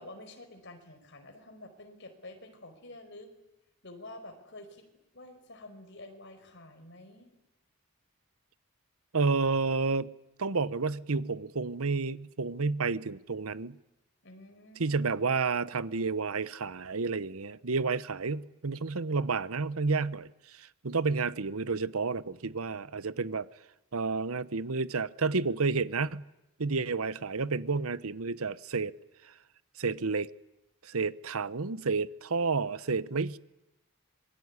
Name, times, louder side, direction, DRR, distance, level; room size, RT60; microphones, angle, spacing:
voice 1, 0.0-3.3 3.8-4.8 5.1-7.3 14.2-15.3, left 2 dB, 55° left, 5.0 m, -49 dB
voice 2, 9.1-10.1 10.4-13.8 14.8-23.5 23.9-26.3 26.6-28.9 29.8-30.3 30.8-33.4, right 4 dB, 80° right, 1.0 m, -30 dB
26.5 x 22.5 x 9.8 m
head